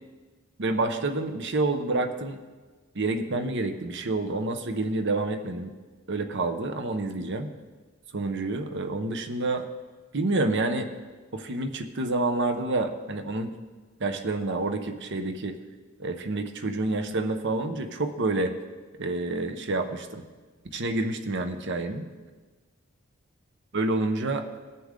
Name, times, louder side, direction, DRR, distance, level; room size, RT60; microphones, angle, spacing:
voice 1, 0.6-2.4 2.9-5.7 6.1-7.5 8.1-9.7 10.1-10.9 11.3-13.5 14.0-15.6 16.0-18.5 19.0-20.2 20.6-22.1 23.7-24.5, right 2 dB, 60° right, 8 dB, 0.9 m, -28 dB
20.0 x 6.8 x 3.8 m, 1.4 s
head